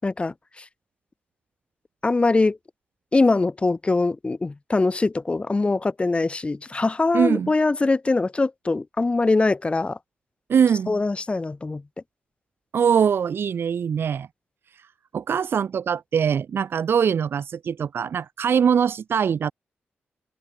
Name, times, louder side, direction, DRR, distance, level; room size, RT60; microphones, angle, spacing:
voice 1, 0.0-0.6 2.0-2.6 3.1-10.0 10.9-11.8, left 3 dB, 30° left, 4.7 m, -22 dB
voice 2, 7.1-7.5 10.5-11.0 12.7-14.3 14.8-14.9 15.1-19.5, right 7 dB, 70° right, 4.9 m, -22 dB
open air
cardioid pair, 90°, 4 cm